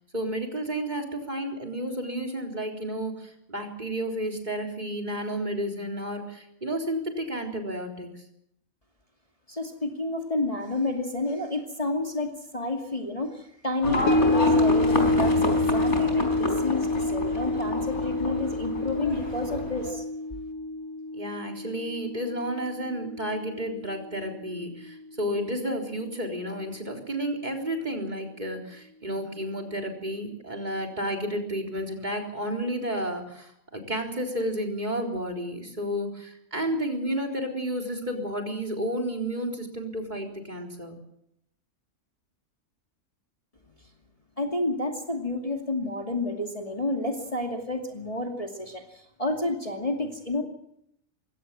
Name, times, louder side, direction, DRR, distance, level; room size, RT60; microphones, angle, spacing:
voice 1, 0.1-8.1 21.1-41.0, equal, 30° right, 2 dB, 4.1 m, -31 dB
voice 2, 9.5-20.0 44.4-50.4, left 2 dB, 25° left, 2 dB, 2.5 m, -30 dB
Livestock farm animals working animals, 13.8-19.9, left 1 dB, 55° left, 4.7 m, -30 dB
sound 1, 14.1-24.4 24.8-24.9, left 2 dB, 70° left, 1.6 m, -27 dB
22.5 x 17.0 x 7.6 m, 0.76 s
omnidirectional pair, 1.5 m